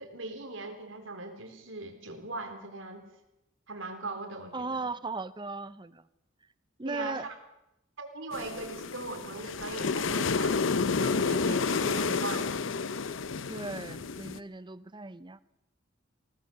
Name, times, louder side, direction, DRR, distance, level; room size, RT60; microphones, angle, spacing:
voice 1, 0.0-3.0 3.7-4.9 6.9-7.3 8.0-12.6, right 2 dB, 80° right, 5 dB, 3.7 m, -40 dB
voice 2, 4.5-6.0 6.8-7.3 13.5-15.4, right 3 dB, 25° right, 16 dB, 0.8 m, -37 dB
sound 1, 8.3-14.4, left 4 dB, 75° left, 0.7 m, -30 dB
21.5 x 18.5 x 6.8 m, 0.89 s
head